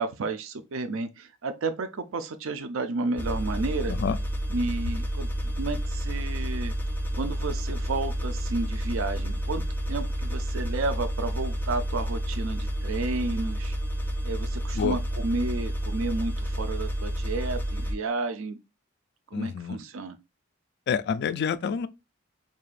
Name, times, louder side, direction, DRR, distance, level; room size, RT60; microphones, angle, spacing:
voice 1, 0.0-3.9 4.5-6.7 7.1-9.6 9.9-13.8 14.2-18.6 19.3-20.2, right 3 dB, 85° right, 0.5 m, -32 dB
sound 1, 3.2-17.9, equal, 10° left, 0.6 m, -30 dB
voice 2, 19.3-19.8 20.9-21.9, left 6 dB, 55° left, 0.3 m, -28 dB
4.7 x 2.8 x 2.4 m
head